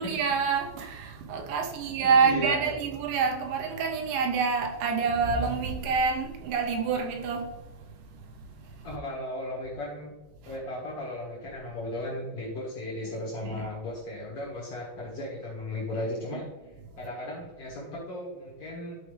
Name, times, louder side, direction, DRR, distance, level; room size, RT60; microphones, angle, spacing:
voice 1, 0.0-7.5 13.4-13.6, right 5 dB, 85° right, 3.1 m, -27 dB
voice 2, 2.0-2.7 8.8-10.1 10.4-16.5 17.0-19.0, left 1 dB, 65° left, 1.4 m, -36 dB
13.0 x 4.6 x 3.3 m
omnidirectional pair, 5.2 m